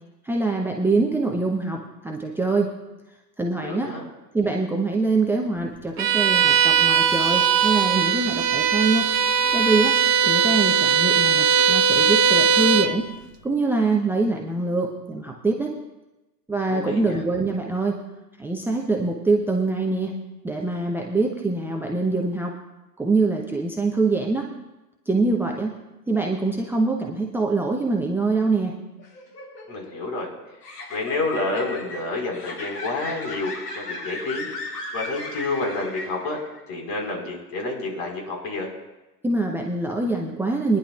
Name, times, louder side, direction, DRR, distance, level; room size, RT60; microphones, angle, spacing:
voice 1, 0.2-2.7 3.4-3.9 4.3-9.1 9.5-10.0 10.3-13.1 13.4-15.8 16.5-18.0 18.4-20.1 20.4-22.6 23.0-24.5 25.1-25.7 26.1-28.8 39.2-40.8, right 3 dB, 5° right, 0 dB, 0.8 m, -24 dB
voice 2, 3.6-4.0 16.7-17.2 29.7-30.3 30.9-36.4 36.7-38.7, left 2 dB, 45° left, 0 dB, 4.7 m, -29 dB
Bowed string instrument, 6.0-13.0, right 6 dB, 70° right, 1.0 m, -19 dB
sound 1, 29.0-36.6, left 2 dB, 70° left, 2.5 m, -36 dB
24.0 x 10.5 x 2.4 m, 1.0 s
figure-of-eight pair, 95°, 49 cm